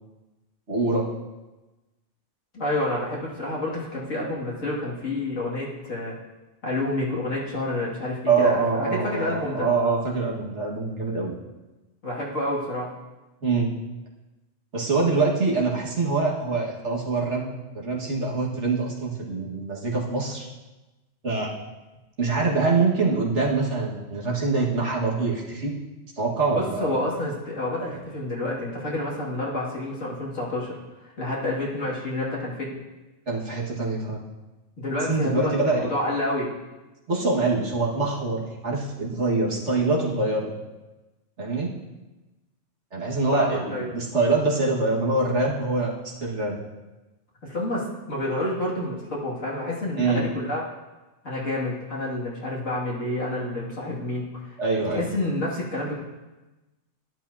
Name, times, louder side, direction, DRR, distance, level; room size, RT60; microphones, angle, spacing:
voice 1, 0.7-1.1 8.3-11.4 13.4-13.7 14.7-20.4 21.2-21.5 22.2-25.7 26.2-26.9 33.3-34.2 35.1-35.9 37.1-40.5 41.4-41.8 42.9-46.6 50.0-50.2 54.6-55.1, right 3 dB, 65° right, -4 dB, 2.1 m, -24 dB
voice 2, 2.5-6.1 6.6-9.7 12.0-12.9 26.5-30.8 31.0-32.7 34.8-36.5 43.4-44.0 47.4-50.6 51.2-54.6 54.9-56.0, left 1 dB, 85° left, -5 dB, 2.8 m, -29 dB
12.0 x 12.0 x 2.8 m, 1.1 s
omnidirectional pair, 1.3 m